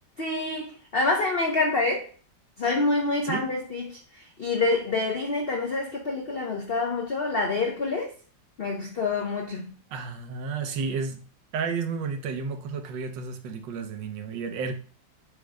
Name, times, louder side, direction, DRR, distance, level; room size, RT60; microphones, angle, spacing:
voice 1, 0.2-2.1 2.6-8.1 8.6-9.7, left 3 dB, 80° left, 0.5 m, -27 dB
voice 2, 9.9-11.3 11.5-14.7, right 5 dB, 80° right, 1.4 m, -32 dB
5.1 x 2.1 x 4.6 m
omnidirectional pair, 2.0 m